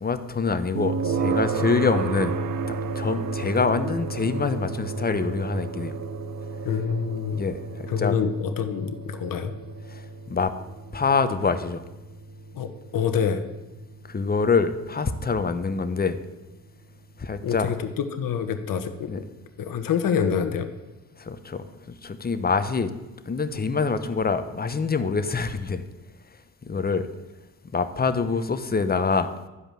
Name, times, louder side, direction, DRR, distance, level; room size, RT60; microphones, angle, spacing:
voice 1, 0.0-2.4 2.7-6.0 7.3-8.2 9.9-10.5 10.9-11.8 14.1-16.2 17.2-17.7 19.1-19.2 21.2-22.9 23.3-25.8 26.6-27.1 27.7-29.3, left 4 dB, 20° left, 0.9 m, -25 dB
sound 1, 0.8-15.7, right 4 dB, 50° right, 0.9 m, -32 dB
voice 2, 6.6-7.4 7.9-9.5 12.5-13.4 17.4-19.2 19.6-20.7, left 7 dB, 50° left, 1.2 m, -26 dB
11.0 x 5.1 x 7.4 m
supercardioid pair, 65°, 42 cm